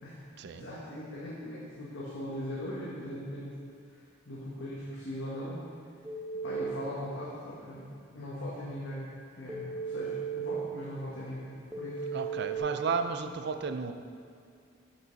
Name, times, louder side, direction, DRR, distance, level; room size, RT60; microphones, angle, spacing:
voice 1, 0.5-3.5 4.3-5.6 6.4-9.1 9.4-12.1, left 1 dB, 70° left, -8 dB, 1.6 m, -40 dB
Telephone, 6.0-6.6 9.5-10.5 11.7-12.6, right 5 dB, 10° right, 0.7 m, -36 dB
voice 2, 12.1-13.9, right 5 dB, 60° right, 8 dB, 0.5 m, -33 dB
12.0 x 5.4 x 4.1 m, 2.4 s
head